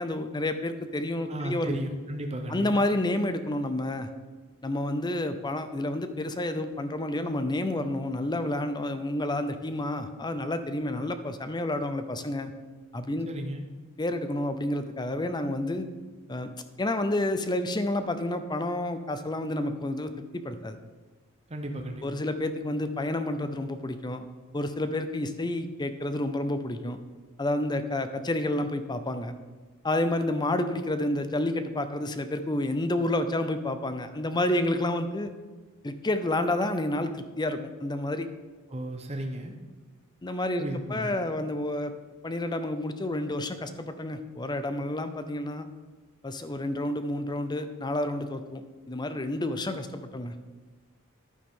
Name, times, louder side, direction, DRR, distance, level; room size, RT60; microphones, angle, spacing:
voice 1, 0.0-1.8 2.5-4.1 4.6-12.5 12.9-13.3 14.0-15.9 16.3-16.5 16.8-20.8 22.0-24.2 24.5-27.0 27.4-29.3 29.8-35.3 35.8-38.3 40.2-41.9 42.2-45.7 46.2-50.3, left 1 dB, 20° left, 10 dB, 0.6 m, -29 dB
voice 2, 1.3-2.8 13.3-13.7 21.5-22.1 38.7-39.5 40.6-41.2, right 1 dB, 30° right, 3 dB, 0.9 m, -34 dB
11.5 x 9.3 x 3.8 m, 1.3 s
head